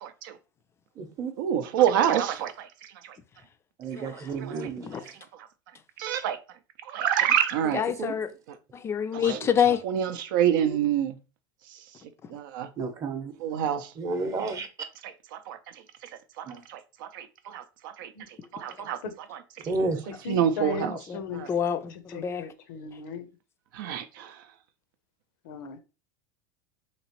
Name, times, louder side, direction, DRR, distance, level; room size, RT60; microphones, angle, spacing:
voice 1, 0.0-0.3 1.4-2.7 3.0-3.1 3.9-4.7 6.0-6.4 6.9-7.8 9.1-9.4 9.8-11.2 12.3-12.7 13.4-13.9 15.0-15.6 16.4-18.1 18.5-19.0 20.3-20.9 23.7-24.4, right 10 dB, 75° right, 0.5 m, -27 dB
voice 2, 1.0-1.3 3.8-4.9 7.6-7.7 8.0-8.1 9.3-9.4 10.6-10.8 12.8-13.3 14.0-14.7 16.5-16.6 19.6-20.0, right 3 dB, 30° right, 0.7 m, -31 dB
voice 3, 7.7-8.3 8.7-9.8 20.8-21.2 21.5-22.5, left 8 dB, 25° left, 0.4 m, -27 dB
voice 4, 20.1-21.5 21.9-23.3 25.4-25.8, left 5 dB, 85° left, 0.7 m, -37 dB
3.0 x 2.9 x 2.9 m
supercardioid pair, 120°, 11 cm